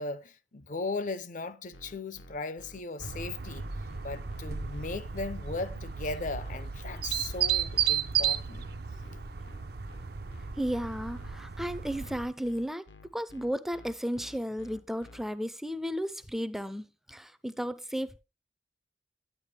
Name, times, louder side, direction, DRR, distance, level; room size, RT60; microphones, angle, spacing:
voice 1, 0.0-3.7 4.0-8.7, left 3 dB, 45° left, 0.6 m, -37 dB
sound 1, 1.7-15.2, left 2 dB, 75° left, 1.1 m, -53 dB
sound 2, 3.0-12.3, right 8 dB, 55° right, 0.6 m, -34 dB
voice 2, 10.6-12.8 13.1-18.2, equal, ahead, 0.5 m, -34 dB
9.8 x 9.4 x 3.3 m
head